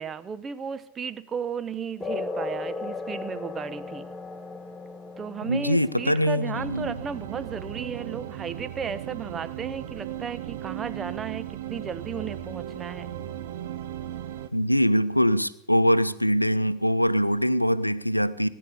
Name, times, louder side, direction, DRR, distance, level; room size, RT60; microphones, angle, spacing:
voice 1, 0.0-4.1 5.2-13.1, right 6 dB, 20° right, 14 dB, 0.9 m, -34 dB
sound 1, 2.0-9.0, left 3 dB, 10° left, 1.3 m, -37 dB
voice 2, 5.5-6.9 14.5-18.5, equal, 90° left, 16 dB, 0.7 m, -23 dB
sound 2, 6.5-14.5, right 11 dB, 55° right, 1.1 m, -36 dB
18.0 x 9.7 x 6.8 m, 0.83 s
figure-of-eight pair, 90°, 0 cm